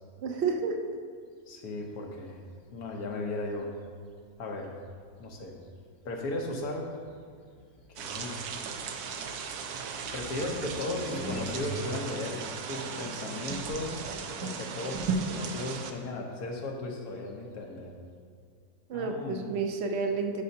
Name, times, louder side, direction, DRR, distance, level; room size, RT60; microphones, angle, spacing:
voice 1, 0.2-1.0 18.9-20.4, right 4 dB, 55° right, 5 dB, 0.8 m, -30 dB
voice 2, 1.5-2.4 2.7-3.7 4.4-4.7 5.2-5.6 6.0-6.9 8.0-8.4 10.1-12.4 12.7-14.0 14.4-17.9 18.9-19.7, left 2 dB, 80° left, 1 dB, 1.5 m, -36 dB
sound 1, 2.6-3.2 4.2-4.3 4.8-14.7 15.0-17.7, equal, 50° left, 1.0 m, -45 dB
sound 2, 8.0-15.9, right 5 dB, 85° right, 1.2 m, -36 dB
12.0 x 5.6 x 2.8 m, 2.2 s
omnidirectional pair, 1.6 m